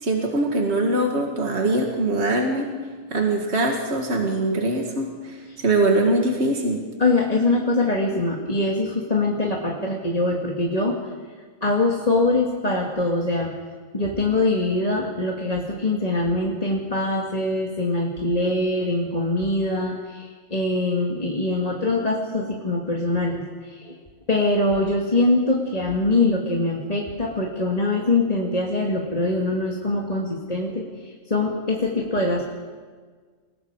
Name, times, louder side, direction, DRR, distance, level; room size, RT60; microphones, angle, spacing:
voice 1, 0.0-2.7 3.1-6.8, right 2 dB, 55° right, 1 dB, 2.4 m, -22 dB
voice 2, 7.0-11.0 11.6-13.5 13.9-23.9 24.3-32.4, left 2 dB, 30° left, -1 dB, 2.0 m, -23 dB
28.0 x 19.5 x 4.9 m, 1.5 s
omnidirectional pair, 1.3 m